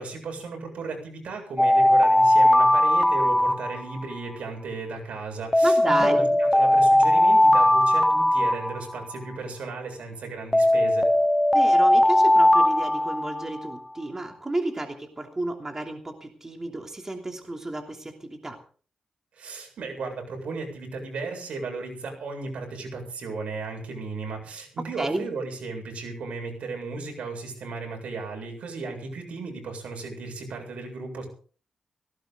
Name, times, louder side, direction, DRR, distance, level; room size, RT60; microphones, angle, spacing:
voice 1, 0.0-11.1 19.3-31.3, right 3 dB, 80° right, 3 dB, 7.8 m, -35 dB
Alarm, 1.6-4.2 5.5-9.2 10.5-13.7, left 1 dB, 5° left, 0.7 m, -19 dB
voice 2, 5.6-6.4 11.5-18.6 25.0-25.3, right 2 dB, 25° right, 3 dB, 3.0 m, -31 dB
18.0 x 17.5 x 3.9 m, 0.42 s
cardioid pair, 95°, 2 cm